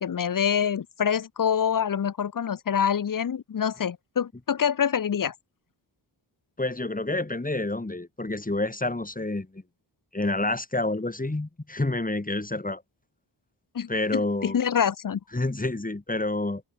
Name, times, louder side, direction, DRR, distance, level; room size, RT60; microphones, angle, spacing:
voice 1, 0.0-5.3 13.7-15.2, left 8 dB, 45° left, 0.9 m, -26 dB
voice 2, 6.6-9.6 10.1-12.8 13.9-14.6 15.3-16.6, left 2 dB, 20° left, 4.5 m, -28 dB
open air
wide cardioid pair, 120°, 46 cm